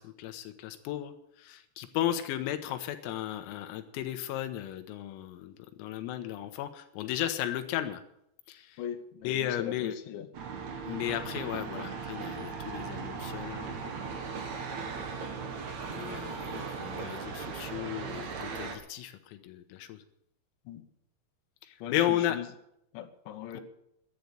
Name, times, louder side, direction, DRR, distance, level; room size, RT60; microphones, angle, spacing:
voice 1, 0.0-8.0 8.5-8.8 9.3-10.0 10.9-13.9 15.8-20.0 21.6-22.4 23.6-23.7, left 12 dB, 90° left, 8 dB, 3.8 m, -34 dB
voice 2, 8.8-10.3 14.9-15.0 20.7-20.8 21.8-22.5 22.9-23.6, left 9 dB, 70° left, 5 dB, 3.3 m, -40 dB
sound 1, 10.3-18.8, right 5 dB, 70° right, 1.7 m, -38 dB
12.0 x 9.4 x 9.9 m, 0.77 s
omnidirectional pair, 6.0 m